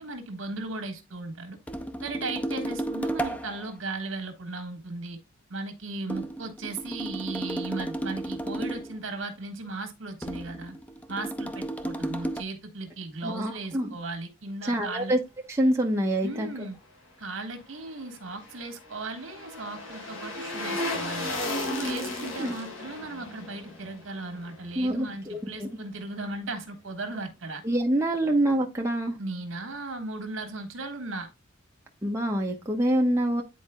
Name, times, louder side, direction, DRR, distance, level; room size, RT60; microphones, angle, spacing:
voice 1, 0.0-1.6 2.0-5.2 5.5-10.7 11.1-15.1 16.2-16.8 17.2-21.3 21.6-27.6 29.2-31.3, right 3 dB, 70° right, 1.5 m, -36 dB
sound 1, 1.7-3.7 6.1-9.0 10.2-12.4, right 1 dB, 5° left, 0.4 m, -33 dB
voice 2, 13.2-14.0 14.7-15.2 15.5-16.5 22.4-22.5 24.8-25.7 27.6-29.1 32.0-33.4, right 1 dB, 15° right, 0.9 m, -26 dB
sound 2, 18.0-25.2 25.5-25.6, left 2 dB, 70° left, 1.8 m, -35 dB
10.0 x 4.2 x 2.2 m
head